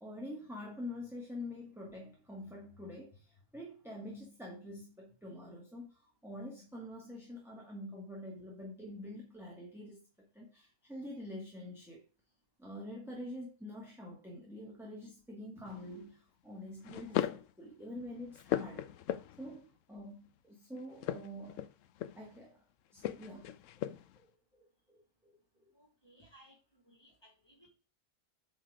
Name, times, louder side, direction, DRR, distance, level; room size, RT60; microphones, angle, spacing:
voice 1, 0.0-10.0 10.3-12.0 12.6-18.9 19.4-21.6 22.2-22.6 22.9-23.9 24.2-24.3 24.5-25.7, left 1 dB, ahead, 1.8 m, -46 dB
sound 1, 15.7-16.0 16.8-17.5 18.0-19.6 20.9-22.4 23.0-24.2, left 12 dB, 70° left, 0.9 m, -38 dB
voice 2, 25.7-27.7, right 1 dB, 15° left, 3.2 m, -62 dB
8.9 x 4.3 x 4.7 m
omnidirectional pair, 1.5 m